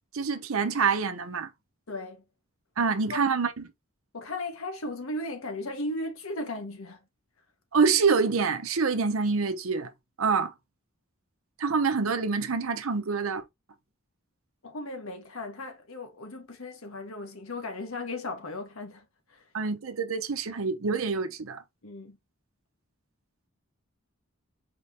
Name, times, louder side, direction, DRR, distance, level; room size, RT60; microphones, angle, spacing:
voice 1, 0.1-1.5 2.8-3.7 7.7-9.9 10.2-10.5 11.6-13.4 19.5-21.6, right 5 dB, 85° right, 0.8 m, -26 dB
voice 2, 1.9-2.2 3.1-3.2 4.1-7.0 14.6-19.0 19.3-19.4 21.8-22.2, left 2 dB, 80° left, 1.2 m, -36 dB
4.3 x 2.9 x 3.3 m
head